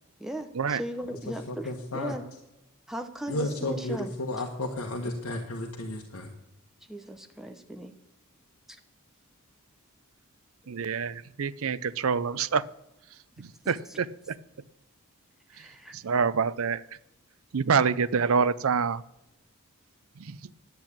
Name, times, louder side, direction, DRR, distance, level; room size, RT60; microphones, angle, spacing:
voice 1, 0.2-2.2 2.9-4.1 6.9-7.9 13.8-14.0 15.5-16.0, right 1 dB, ahead, 5 dB, 1.0 m, -38 dB
voice 2, 1.5-2.1 3.3-6.3, left 1 dB, 70° left, 1 dB, 1.4 m, -33 dB
voice 3, 10.7-12.6 13.4-14.3 15.9-16.8 17.5-19.0 20.3-20.4, right 6 dB, 65° right, 17 dB, 0.5 m, -26 dB
10.5 x 8.2 x 8.6 m, 0.87 s
head